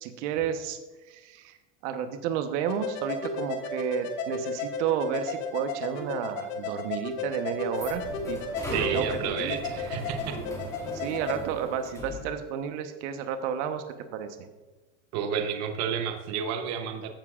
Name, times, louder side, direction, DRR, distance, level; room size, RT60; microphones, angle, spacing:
voice 1, 0.0-0.8 1.0-1.6 1.8-8.4 8.7-9.6 10.9-13.8 14.1-14.4, right 8 dB, 65° right, 7 dB, 1.0 m, -31 dB
sound 1, 2.7-11.4, left 4 dB, 80° left, 1.4 m, -34 dB
sound 2, 7.1-12.3, equal, 10° left, 2.0 m, -39 dB
voice 2, 8.7-10.4 15.1-17.1, right 8 dB, 45° right, 5 dB, 0.9 m, -31 dB
14.5 x 7.1 x 2.4 m, 1.2 s
supercardioid pair, 140°, 38 cm